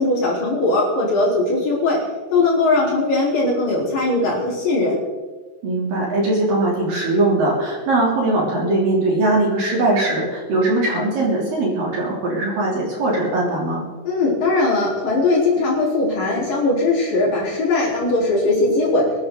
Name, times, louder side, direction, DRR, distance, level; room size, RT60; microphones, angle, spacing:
voice 1, 0.0-2.0 2.3-4.9 14.0-19.0, left 2 dB, 45° left, -5 dB, 5.3 m, -19 dB
voice 2, 5.6-13.8, right 2 dB, 45° right, -4 dB, 4.3 m, -20 dB
23.5 x 12.5 x 3.9 m, 1.4 s
omnidirectional pair, 5.8 m